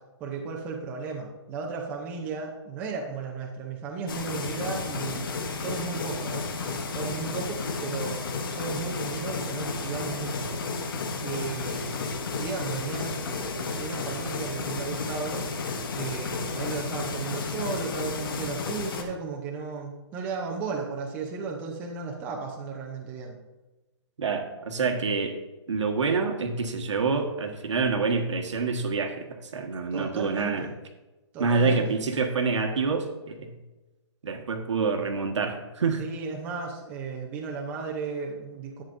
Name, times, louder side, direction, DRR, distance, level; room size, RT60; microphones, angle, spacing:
voice 1, 0.2-5.3 5.6-6.5 6.9-8.2 8.5-10.6 11.2-15.5 15.9-23.4 29.9-30.7 31.3-32.0 36.0-38.8, right 5 dB, 10° right, 0 dB, 0.6 m, -35 dB
sound 1, 4.1-19.0, left 4 dB, 50° left, 1.0 m, -32 dB
voice 2, 24.2-25.3 25.7-29.3 29.5-30.7 31.4-33.5 34.2-36.0, right 4 dB, 85° right, 4 dB, 1.4 m, -27 dB
10.5 x 8.6 x 2.6 m, 1.1 s
hypercardioid pair, 170°, 15 cm